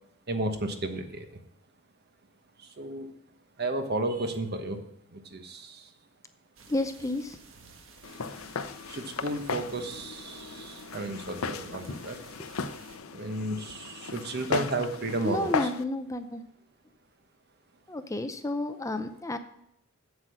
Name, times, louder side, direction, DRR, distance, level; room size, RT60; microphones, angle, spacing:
voice 1, 0.3-1.3 2.6-3.1 3.6-4.8 5.1-5.9 8.0-8.1 8.9-12.2 13.1-15.7, right 2 dB, 50° right, 7 dB, 1.2 m, -33 dB
sound 1, 6.6-13.0, right 4 dB, 65° right, 1.5 m, -53 dB
voice 2, 6.7-7.4 15.2-16.4 17.9-19.4, left 2 dB, 15° left, 9 dB, 0.5 m, -31 dB
Walk footsteps, 8.0-15.8, left 5 dB, 85° left, 0.6 m, -36 dB
8.1 x 7.6 x 6.3 m, 0.76 s
head